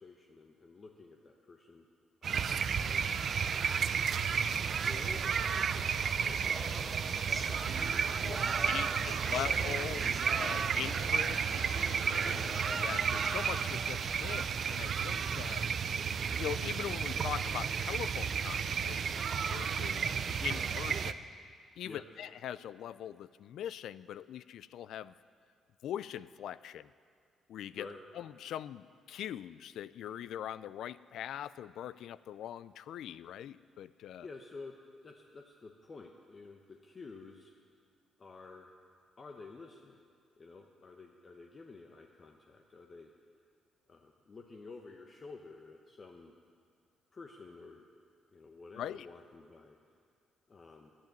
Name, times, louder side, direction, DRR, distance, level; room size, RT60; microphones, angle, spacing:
voice 1, 0.0-1.9 2.2-3.3 4.0-4.4 4.8-9.5 12.2-12.6 21.8-22.2 27.7-28.0 34.2-34.8 35.0-37.5 38.2-38.7 39.2-40.0 40.4-43.1 43.9-46.3 47.1-47.9 48.3-49.8 50.5-50.9, left 3 dB, 40° left, 2 dB, 0.9 m, -51 dB
sound 1, 2.2-21.1, right 6 dB, 55° right, 0.5 m, -32 dB
sound 2, 6.4-14.4, equal, 5° left, 1.4 m, -46 dB
sound 3, 7.7-12.7, right 6 dB, 90° right, 1.1 m, -46 dB
voice 2, 8.6-10.1 10.3-11.7 12.1-12.2 12.7-15.6 16.4-21.2 21.8-25.1 25.8-26.9 27.5-27.9 28.2-34.3 48.8-49.1, left 10 dB, 75° left, 17 dB, 0.3 m, -42 dB
10.5 x 9.1 x 9.1 m, 2.1 s
cardioid pair, 90°, 0 cm